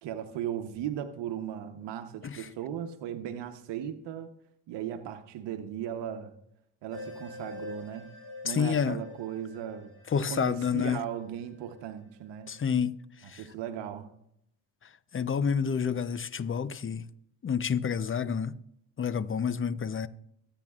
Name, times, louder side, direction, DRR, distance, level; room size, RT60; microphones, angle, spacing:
voice 1, 0.0-4.3 4.7-6.3 6.8-8.1 8.4-9.9 10.3-12.5 13.3-14.1, right 9 dB, 75° right, 1.1 m, -37 dB
sound 1, 6.9-12.6, left 3 dB, 50° left, 5.5 m, -47 dB
voice 2, 8.5-9.0 10.1-11.0 12.5-12.9 13.3-13.4 15.1-17.0 17.4-18.5 19.0-20.1, left 7 dB, 30° left, 0.7 m, -29 dB
23.5 x 9.1 x 2.4 m
supercardioid pair, 70°, 42 cm